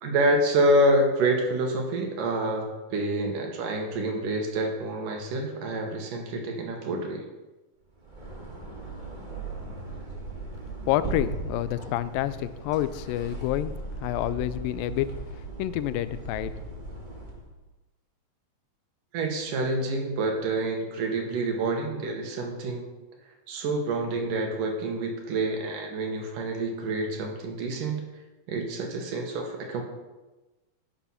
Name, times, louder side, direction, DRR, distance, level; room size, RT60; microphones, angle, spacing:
voice 1, 0.0-7.3 19.1-22.9 23.5-28.0 28.5-29.8, right 1 dB, 75° right, 2 dB, 3.1 m, -27 dB
sound 1, 7.9-17.5, right 2 dB, 20° right, 1.2 m, -38 dB
voice 2, 10.9-15.2 15.6-16.5, left 13 dB, 85° left, 14 dB, 2.3 m, -28 dB
11.5 x 6.9 x 5.8 m, 1.1 s
omnidirectional pair, 3.9 m